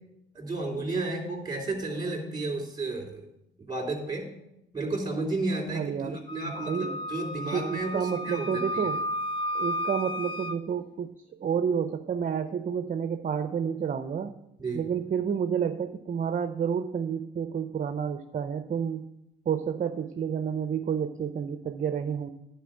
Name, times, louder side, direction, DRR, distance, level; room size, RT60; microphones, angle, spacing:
voice 1, 0.3-3.2 3.7-4.3 4.7-8.9 14.6-14.8, right 2 dB, 20° right, 0 dB, 3.2 m, -32 dB
voice 2, 5.7-6.9 7.5-9.0 9.5-11.1 11.4-14.3 14.7-19.1 19.5-22.3, right 7 dB, 40° right, 9 dB, 0.6 m, -30 dB
Wind instrument woodwind instrument, 6.3-10.6, equal, 25° left, 0.9 m, -33 dB
10.5 x 4.4 x 7.6 m, 0.84 s
cardioid pair, 90°, 20 cm